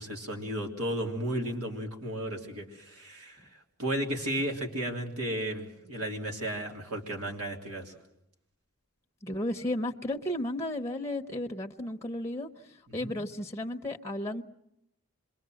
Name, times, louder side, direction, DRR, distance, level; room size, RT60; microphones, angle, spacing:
voice 1, 0.0-3.5 3.8-7.9 13.0-13.1, right 1 dB, 85° right, 2 dB, 3.3 m, -34 dB
voice 2, 9.2-14.4, left 1 dB, 15° left, 4 dB, 0.9 m, -34 dB
26.5 x 22.5 x 7.8 m, 0.81 s
head